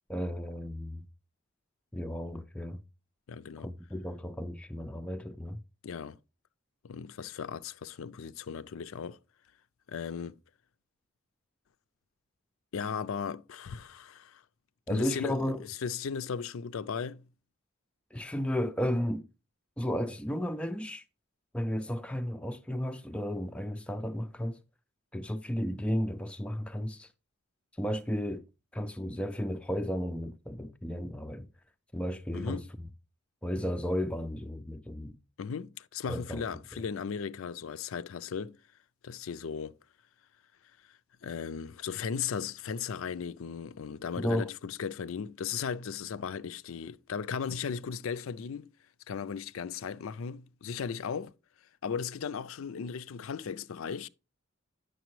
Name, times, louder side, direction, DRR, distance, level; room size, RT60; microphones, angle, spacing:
voice 1, 0.1-1.0 1.9-2.8 3.6-5.6 14.9-15.6 18.1-19.3 19.8-21.0 21.5-24.6 25.1-27.1 27.8-28.5 28.7-31.5 31.9-32.6 33.4-35.2 36.1-36.5 44.2-44.5, equal, 5° left, 0.3 m, -33 dB
voice 2, 3.3-3.7 5.8-6.2 6.8-9.2 9.9-10.3 12.7-14.4 14.9-17.2 32.3-32.7 35.4-38.6 39.0-39.7 40.9-48.7 49.1-51.3 51.8-54.1, left 6 dB, 70° left, 0.4 m, -36 dB
9.1 x 6.6 x 3.0 m
head